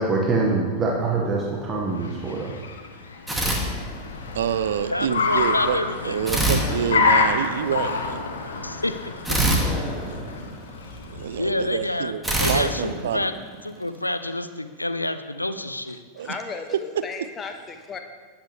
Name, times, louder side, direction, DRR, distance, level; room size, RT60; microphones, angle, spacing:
voice 1, 0.0-2.6, right 3 dB, 20° right, -1 dB, 1.7 m, -24 dB
Car, 1.6-11.8, left 4 dB, 65° left, 1.4 m, -28 dB
sound 1, 3.3-4.4 6.3-7.6 9.2-10.9 12.2-13.8, right 1 dB, 5° right, 2.3 m, -25 dB
voice 2, 4.3-5.8 6.0-8.8 11.0-12.2 12.5-13.3 16.1-16.4, right 9 dB, 60° right, 14 dB, 0.6 m, -28 dB
voice 3, 4.9-6.5 8.6-8.9 9.3-9.4 11.4-13.3 13.6-16.0, left 1 dB, 85° left, 11 dB, 0.7 m, -28 dB
voice 4, 16.2-18.0, left 4 dB, 20° left, 5 dB, 1.4 m, -35 dB
19.0 x 8.9 x 3.4 m, 1.5 s
figure-of-eight pair, 90°, 0 cm